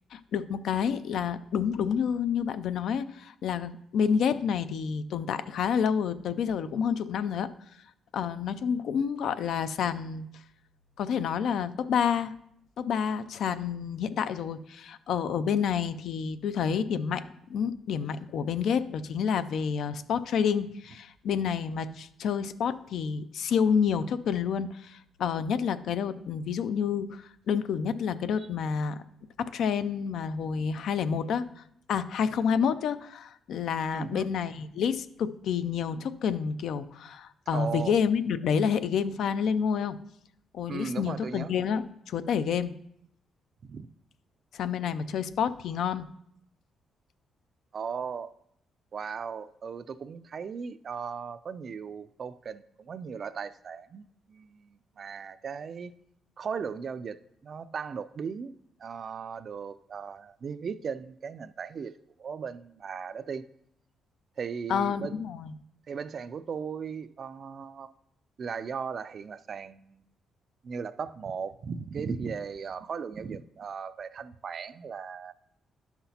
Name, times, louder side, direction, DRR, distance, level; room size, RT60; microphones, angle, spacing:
voice 1, 0.1-7.5 8.1-10.3 11.0-12.3 12.8-17.2 17.5-29.0 29.4-31.5 31.9-40.0 40.5-42.7 44.5-46.1 64.7-65.5, left 7 dB, 70° left, 13 dB, 0.3 m, -29 dB
voice 2, 33.9-34.3 37.5-37.9 40.7-41.5 43.7-43.9 47.7-48.3 48.9-55.9 56.4-58.5 58.8-63.5 64.4-65.2 65.9-67.9 68.4-70.0 70.6-75.3, right 6 dB, 45° right, 14 dB, 0.3 m, -37 dB
11.0 x 5.8 x 2.8 m, 0.72 s
cardioid pair, 130°, 0 cm